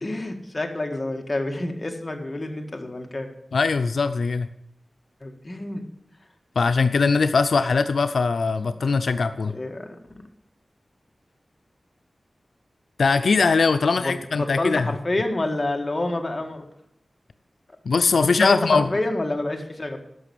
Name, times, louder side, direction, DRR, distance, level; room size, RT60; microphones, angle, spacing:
voice 1, 0.0-3.3 5.2-5.8 9.5-10.0 13.9-16.7 18.4-20.0, left 2 dB, 30° left, 3 dB, 1.8 m, -28 dB
voice 2, 3.5-4.5 6.6-9.5 13.0-14.9 17.9-18.9, left 4 dB, 90° left, 10 dB, 0.5 m, -21 dB
11.0 x 6.7 x 8.4 m, 0.79 s
wide cardioid pair, 100°, 0 cm